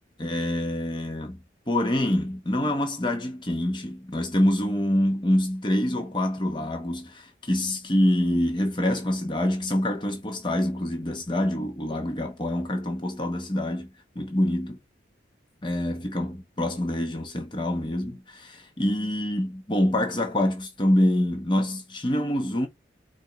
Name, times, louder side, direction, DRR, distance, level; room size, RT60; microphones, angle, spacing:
voice 1, 0.2-1.4 1.7-13.9 14.1-14.8 15.6-22.7, left 1 dB, 25° left, 1.0 m, -26 dB
5.1 x 2.5 x 4.0 m
head